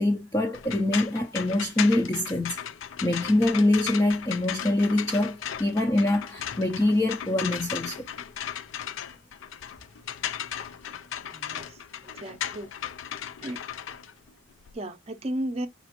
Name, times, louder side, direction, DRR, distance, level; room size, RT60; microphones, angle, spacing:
voice 1, 0.0-2.6 3.0-8.1, left 1 dB, 15° left, 0.4 m, -24 dB
sound 1, 0.5-14.7, left 9 dB, 85° left, 0.4 m, -36 dB
voice 2, 11.3-11.8 12.1-12.7 13.4-13.6 14.7-15.7, right 1 dB, 30° right, 0.6 m, -34 dB
5.1 x 2.9 x 2.9 m
head